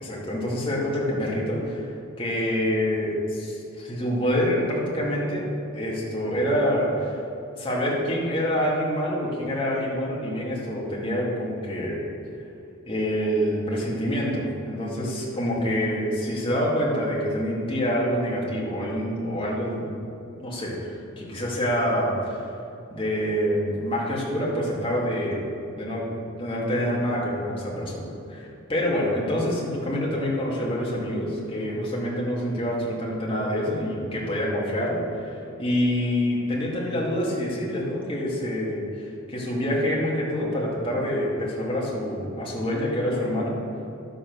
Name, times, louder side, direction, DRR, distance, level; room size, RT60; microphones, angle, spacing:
voice 1, 0.0-7.2 7.6-12.0 12.9-19.9 20.4-22.4 22.9-26.0 26.4-43.6, equal, 25° left, -5 dB, 2.4 m, -26 dB
11.5 x 8.0 x 6.3 m, 2.6 s
head